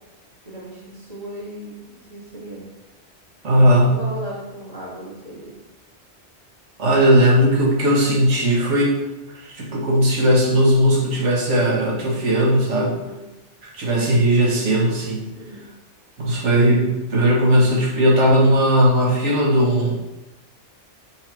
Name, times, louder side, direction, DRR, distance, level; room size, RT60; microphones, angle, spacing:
voice 1, 0.4-2.7 3.7-5.6 12.9-13.2 15.3-15.6, right 1 dB, 35° right, -8 dB, 2.6 m, -36 dB
voice 2, 3.4-4.0 6.8-9.0 9.5-13.0 13.7-15.2 16.2-19.9, equal, 85° right, -2 dB, 1.5 m, -17 dB
4.6 x 4.5 x 5.9 m, 1.0 s
omnidirectional pair, 1.2 m